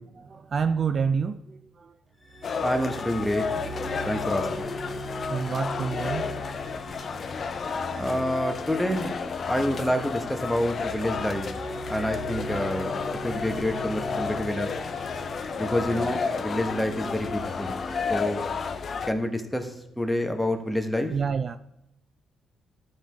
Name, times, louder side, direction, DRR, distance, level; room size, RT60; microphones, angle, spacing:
voice 1, 0.2-1.9 5.3-6.3 21.1-21.6, right 6 dB, 45° right, 0.3 m, -28 dB
sound 1, 2.2-19.3, equal, 25° left, 1.3 m, -39 dB
sound 2, 2.4-19.1, left 5 dB, 50° left, 0.5 m, -32 dB
voice 2, 2.6-3.5 4.0-4.7 8.0-9.2 9.5-11.5 11.9-14.7 15.6-17.8 18.1-18.5 19.0-21.1, left 1 dB, 5° left, 1.1 m, -28 dB
12.5 x 4.6 x 3.4 m
cardioid pair, 90°, 0 cm